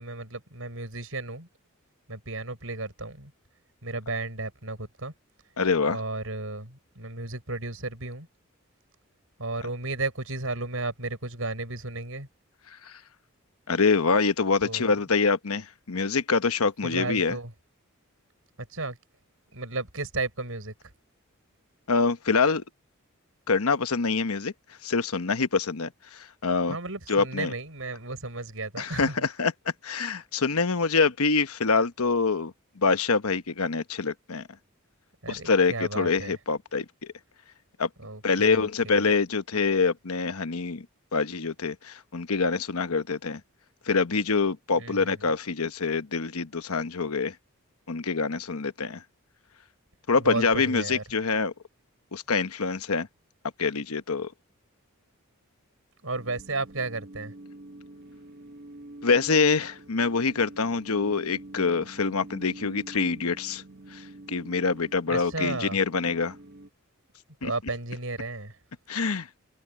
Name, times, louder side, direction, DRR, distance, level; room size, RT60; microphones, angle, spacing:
voice 1, 0.0-1.5 2.1-3.3 3.8-5.1 5.9-8.3 9.4-12.3 14.6-14.9 16.8-17.5 18.6-19.0 19.5-20.7 26.7-29.1 35.2-36.3 38.0-39.1 44.8-45.1 50.2-51.0 56.0-57.3 65.1-65.8 67.4-68.6, right 3 dB, 70° right, 5.9 m, -34 dB
voice 2, 5.6-6.0 12.7-13.0 13.7-17.4 21.9-22.6 23.5-26.8 27.1-27.5 28.8-34.5 35.3-37.1 37.8-37.9 38.2-40.9 41.1-43.4 43.8-47.4 47.9-49.0 50.1-51.5 52.1-53.1 53.6-54.3 59.0-63.6 63.9-66.4 67.4-67.5 68.9-69.3, left 4 dB, 90° left, 1.1 m, -25 dB
sound 1, 56.1-66.7, right 1 dB, 45° right, 2.1 m, -46 dB
head